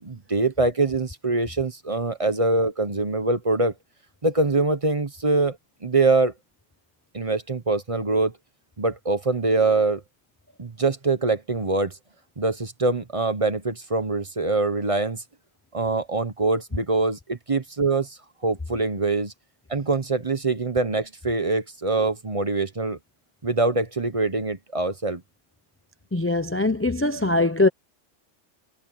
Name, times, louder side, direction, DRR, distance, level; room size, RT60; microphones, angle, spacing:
voice 1, 0.0-3.7 4.2-6.3 7.1-8.4 8.8-10.0 10.6-12.0 12.4-15.2 15.7-19.3 19.7-23.0 23.4-25.2, right 3 dB, 30° right, 1.1 m, -24 dB
voice 2, 26.1-27.7, left 2 dB, 15° left, 0.5 m, -22 dB
omnidirectional pair, 1.3 m